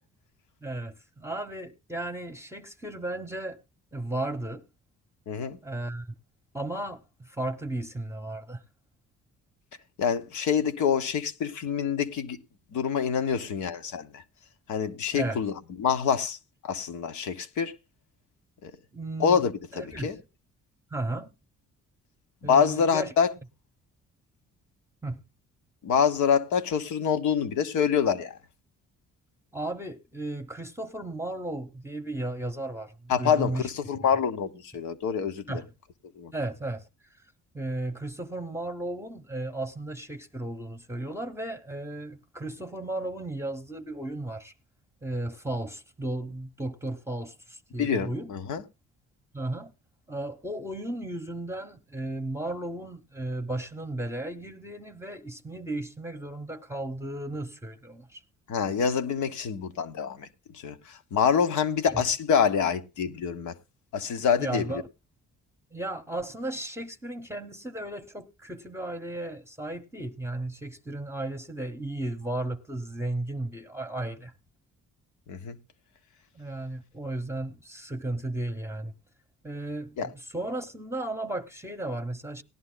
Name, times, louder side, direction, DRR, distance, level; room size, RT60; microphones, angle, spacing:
voice 1, 0.6-3.6 3.9-4.7 5.6-6.1 6.5-8.6 15.1-15.4 18.9-19.4 19.7-20.2 20.9-21.3 22.4-23.1 25.0-25.3 29.5-33.7 34.0-34.2 35.5-35.7 36.3-36.9 37.5-44.5 45.0-48.3 49.3-49.7 50.1-58.2 61.9-62.0 64.4-64.9 65.7-74.3 76.3-78.9 79.4-82.4, right 2 dB, 10° right, 0.9 m, -35 dB
voice 2, 5.3-5.6 10.0-12.4 12.7-14.2 14.7-16.4 16.6-17.7 18.6-18.7 19.2-20.2 22.4-23.3 25.8-28.4 33.1-35.6 36.2-36.3 47.8-48.6 58.5-60.3 60.6-63.5 63.9-64.8 75.3-75.6 80.0-80.1, left 7 dB, 75° left, 1.1 m, -26 dB
18.5 x 11.0 x 2.2 m
cardioid pair, 90°, 30 cm